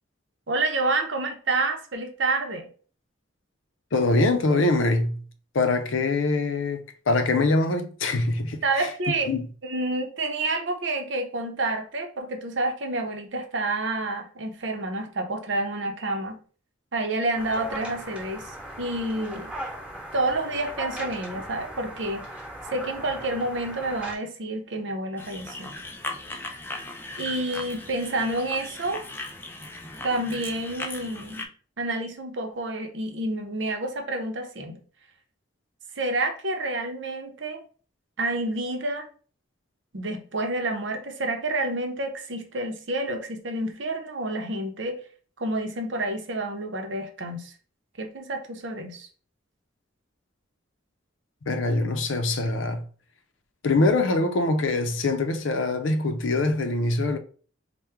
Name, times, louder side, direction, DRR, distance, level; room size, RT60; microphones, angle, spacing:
voice 1, 0.5-2.7 8.6-9.3 9.6-16.4 16.9-18.5 18.8-19.5 20.1-22.2 22.7-25.7 27.2-29.0 30.0-31.5 31.8-34.8 36.0-37.6 38.2-39.1 39.9-45.0 45.4-47.5 48.0-49.1, right 2 dB, 65° right, 0.7 m, -29 dB
voice 2, 3.9-5.2 5.5-8.9 9.3-9.5 51.5-52.8 53.6-57.2, left 2 dB, 80° left, 0.6 m, -24 dB
sound 1, 17.3-24.2, right 1 dB, 5° right, 0.9 m, -38 dB
sound 2, 25.2-31.5, left 2 dB, 10° left, 0.4 m, -38 dB
4.4 x 2.2 x 3.5 m
head